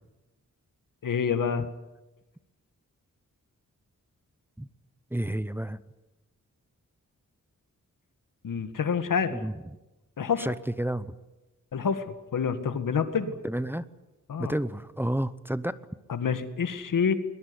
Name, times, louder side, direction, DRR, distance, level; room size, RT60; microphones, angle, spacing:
voice 1, 1.0-1.6 8.4-9.4 10.2-10.5 11.7-12.0 12.3-13.4 14.3-14.5 16.1-17.2, left 6 dB, 90° left, 9 dB, 2.0 m, -27 dB
voice 2, 5.1-5.8 9.3-9.8 10.4-11.1 13.4-13.9 14.4-15.8, right 1 dB, 5° right, 14 dB, 0.7 m, -30 dB
22.0 x 20.5 x 9.8 m, 1.0 s
wide cardioid pair, 145°, 31 cm